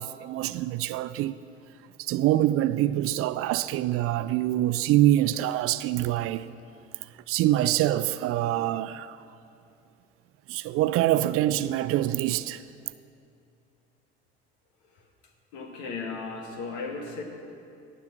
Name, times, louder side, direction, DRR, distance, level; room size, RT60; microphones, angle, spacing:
voice 1, 0.0-1.4 2.0-6.5 7.0-9.2 10.5-12.6, right 14 dB, 45° right, 0.5 m, -25 dB
voice 2, 15.5-17.2, left 4 dB, 60° left, 2.1 m, -35 dB
18.0 x 7.7 x 6.1 m
figure-of-eight pair, 65°, 32 cm